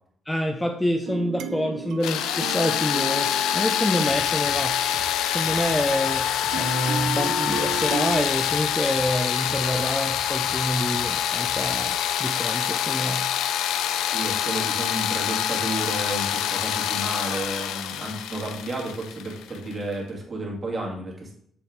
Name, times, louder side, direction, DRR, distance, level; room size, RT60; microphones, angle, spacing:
voice 1, 0.3-4.8 5.3-13.3, equal, 10° left, 5 dB, 0.5 m, -27 dB
sound 1, 1.1-5.3 6.5-8.3, right 6 dB, 80° right, 0.5 m, -34 dB
sound 2, 2.0-19.7, left 10 dB, 90° left, 0.4 m, -26 dB
sound 3, 4.1-12.0, right 3 dB, 50° right, 1.5 m, -45 dB
voice 2, 14.0-21.3, right 2 dB, 30° right, -2 dB, 2.2 m, -32 dB
7.0 x 4.3 x 3.7 m, 0.65 s
cardioid pair, 90°, 0 cm